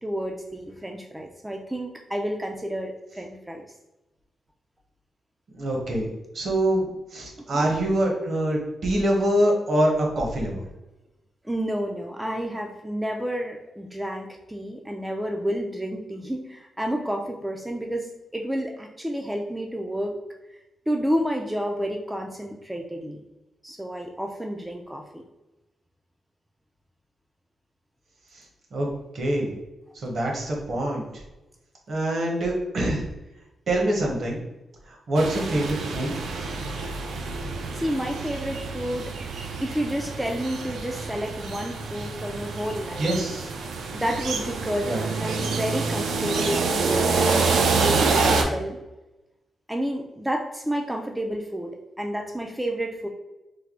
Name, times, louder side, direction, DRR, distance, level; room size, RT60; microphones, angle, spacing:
voice 1, 0.0-3.6 7.5-7.8 11.4-20.2 20.9-23.2 23.6-25.2 37.7-39.2 39.6-43.1 43.9-47.5 47.8-48.8 49.7-53.1, equal, 5° right, 1 dB, 0.3 m, -30 dB
voice 2, 5.5-6.1 6.3-6.9 7.1-10.6 28.7-28.9 29.1-29.5 29.9-31.2 31.9-33.0 33.7-34.4 34.9-36.2 43.0-43.5 44.8-45.0, right 1 dB, 55° right, 0 dB, 0.9 m, -25 dB
sound 1, 35.1-48.4, right 4 dB, 85° right, 0.5 m, -27 dB
3.2 x 2.1 x 3.6 m, 1.0 s
wide cardioid pair, 125°, 0 cm